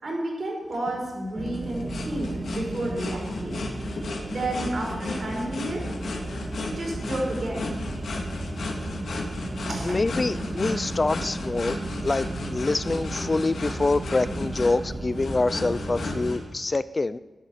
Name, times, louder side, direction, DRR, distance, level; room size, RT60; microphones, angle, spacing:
voice 1, 0.0-3.6 4.3-5.8 6.6-7.7 9.7-10.0, right 1 dB, 50° right, -2 dB, 5.7 m, -31 dB
sound 1, 0.7-16.4, left 3 dB, 80° left, 2.6 m, -35 dB
sound 2, 1.3-16.3, right 2 dB, 25° right, 1.9 m, -35 dB
voice 2, 9.8-11.8 12.0-17.2, left 3 dB, 30° left, 15 dB, 0.4 m, -26 dB
13.0 x 11.0 x 6.6 m, 1.3 s
wide cardioid pair, 100°, 0 cm